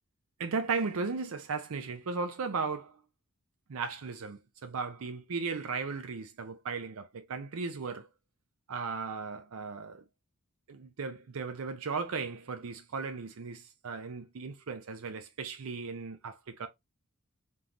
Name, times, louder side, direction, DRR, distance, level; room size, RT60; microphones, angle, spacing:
voice 1, 0.4-3.0 3.7-8.1 8.7-10.0 10.7-16.7, right 4 dB, 65° right, 0.5 m, -36 dB
3.8 x 3.7 x 2.9 m
head